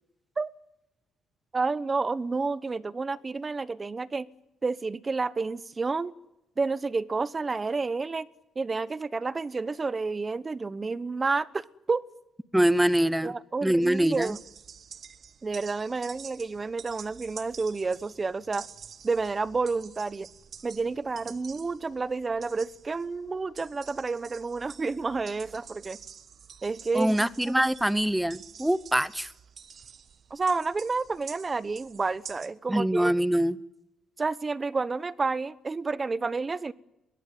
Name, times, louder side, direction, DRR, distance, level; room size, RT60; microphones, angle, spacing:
voice 1, 1.5-4.3 4.6-6.1 6.6-8.3 8.5-12.0 13.2-14.4 15.4-18.7 19.0-20.3 20.6-26.0 26.6-27.2 27.4-27.7 30.3-33.1 34.2-36.7, right 4 dB, 30° right, 1.0 m, -30 dB
voice 2, 12.5-13.3 13.6-14.4 26.9-29.3 32.7-33.6, right 1 dB, 5° right, 0.9 m, -24 dB
sound 1, 13.8-32.5, right 7 dB, 55° right, 1.3 m, -48 dB
22.5 x 18.0 x 9.6 m
cardioid pair, 90°, 0 cm